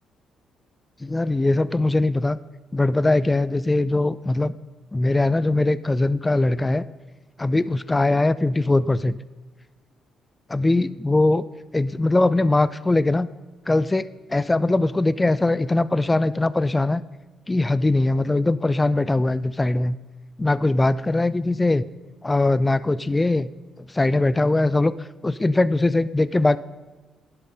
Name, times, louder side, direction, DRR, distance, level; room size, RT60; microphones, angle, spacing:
voice 1, 1.0-2.4 2.7-4.5 4.9-6.8 7.4-9.2 10.5-11.4 11.7-13.3 13.7-17.0 17.5-20.0 20.4-21.8 22.2-23.5 23.9-26.6, left 2 dB, 15° left, 17 dB, 0.3 m, -21 dB
11.5 x 11.0 x 3.8 m, 1.3 s
cardioid pair, 90°, 0 cm